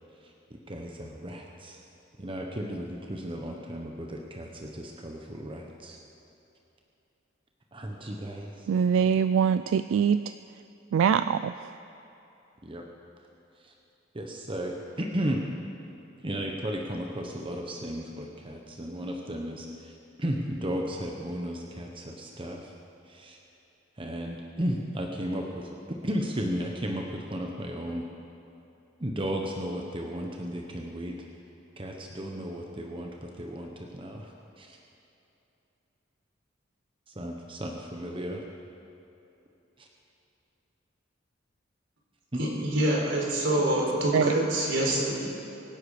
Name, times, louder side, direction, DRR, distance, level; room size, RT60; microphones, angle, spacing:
voice 1, 0.2-1.8 2.2-6.0 7.7-8.7 12.6-12.8 13.6-13.7 14.1-15.4 16.2-22.7 23.0-23.4 24.0-25.7 26.0-28.1 29.0-31.2 31.8-34.8 37.1-38.4 39.8-39.9 42.3-42.4, equal, 25° right, 1 dB, 1.0 m, -34 dB
voice 2, 8.7-10.3 10.9-11.7 44.1-44.3, right 7 dB, 85° right, 12 dB, 0.3 m, -23 dB
voice 3, 42.4-45.1, right 1 dB, 65° right, -2 dB, 4.0 m, -26 dB
24.5 x 10.5 x 5.0 m, 2.9 s
head